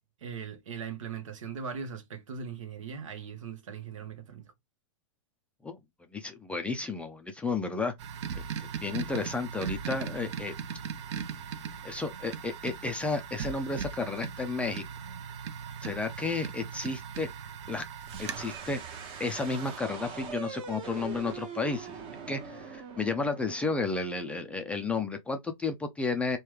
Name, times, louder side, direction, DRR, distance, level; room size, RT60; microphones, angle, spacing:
voice 1, 0.2-4.5, right 6 dB, 70° right, 0.9 m, -39 dB
voice 2, 6.1-7.9 8.3-10.5 11.8-14.8 15.8-17.3 17.7-17.8 18.2-18.8 19.2-21.9 22.3-26.4, left 3 dB, 5° left, 0.3 m, -32 dB
sound 1, 8.0-19.8, right 7 dB, 55° right, 0.5 m, -39 dB
sound 2, 18.0-24.8, right 6 dB, 30° right, 0.8 m, -43 dB
3.3 x 2.2 x 3.1 m
hypercardioid pair, 120°, 17 cm